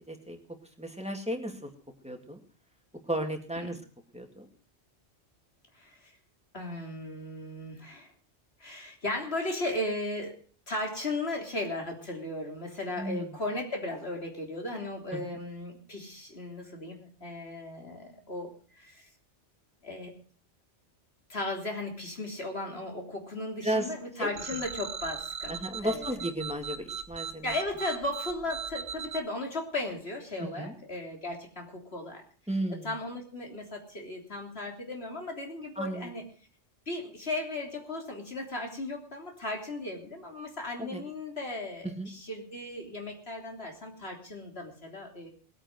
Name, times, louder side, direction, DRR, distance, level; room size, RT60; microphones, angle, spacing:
voice 1, 0.1-0.4 0.8-1.7 2.0-2.4 3.1-3.8 4.1-4.5 13.0-13.4 15.1-15.2 23.6-23.9 24.2-24.3 25.5-27.5 30.4-30.8 32.5-33.0 35.8-36.1 40.8-41.0 41.8-42.1, right 1 dB, 5° right, 3 dB, 2.3 m, -34 dB
voice 2, 5.7-6.1 6.5-8.1 8.6-10.4 10.7-19.1 19.8-20.1 21.3-25.6 25.8-26.1 27.4-32.2 32.8-36.2 36.9-45.3, left 2 dB, 65° left, 2 dB, 3.7 m, -36 dB
sound 1, 24.4-29.2, right 6 dB, 85° right, 1.3 m, -38 dB
19.5 x 8.8 x 6.0 m, 0.41 s
omnidirectional pair, 1.2 m